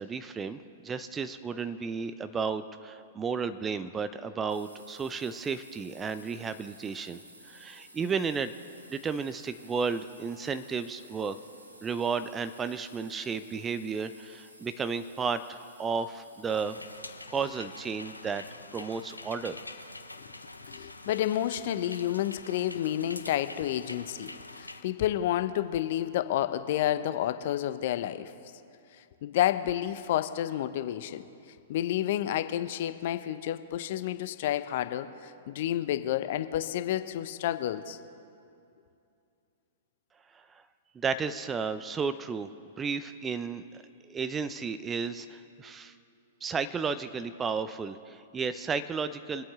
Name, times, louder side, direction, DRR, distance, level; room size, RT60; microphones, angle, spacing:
voice 1, 0.0-8.5 8.9-11.4 11.8-16.8 17.3-18.4 18.7-19.6 40.5-40.6 40.9-42.5 42.8-45.9 46.4-49.4, right 5 dB, 20° right, 12 dB, 0.6 m, -33 dB
sound 1, 4.5-17.2, right 1 dB, 90° right, 1.4 m, -54 dB
sound 2, 16.5-24.8, left 2 dB, 90° left, 0.7 m, -45 dB
voice 2, 20.7-28.3 29.2-31.2 31.7-38.0, left 12 dB, 50° left, 11 dB, 0.7 m, -30 dB
25.0 x 8.5 x 3.6 m, 2.6 s
figure-of-eight pair, 105°, 0 cm